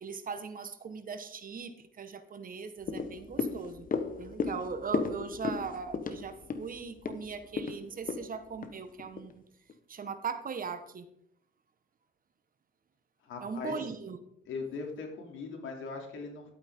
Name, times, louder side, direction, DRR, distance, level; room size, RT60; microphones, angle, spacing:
voice 1, 0.0-3.9 4.2-9.4 9.9-11.1 13.4-14.2, right 5 dB, 45° right, 9 dB, 1.3 m, -39 dB
sound 1, 2.8-9.3 9.7-9.8, left 5 dB, 45° left, 1.3 m, -35 dB
voice 2, 13.2-13.8 14.5-16.5, left 4 dB, 80° left, 2 dB, 2.9 m, -40 dB
12.0 x 8.6 x 3.7 m, 0.68 s
cardioid pair, 90°, 20 cm